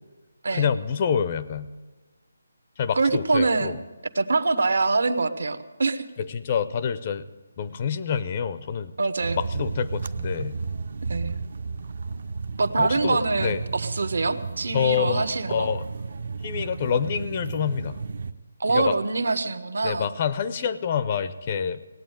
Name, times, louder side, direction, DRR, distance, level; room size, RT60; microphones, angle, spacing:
voice 1, 0.5-1.7 2.8-3.7 6.2-7.2 7.6-8.9 9.4-10.6 12.8-13.6 14.7-15.8 16.4-18.0 18.7-18.9 19.8-21.9, left 7 dB, 25° left, 13 dB, 0.5 m, -27 dB
voice 2, 3.0-3.8 4.1-6.1 9.0-9.4 11.1-11.4 12.6-15.7 18.6-20.1, right 3 dB, 65° right, 11 dB, 1.1 m, -24 dB
sound 1, 9.2-18.3, right 4 dB, 45° right, 0.6 m, -33 dB
17.5 x 9.0 x 9.1 m, 1.2 s
hypercardioid pair, 175°, 0 cm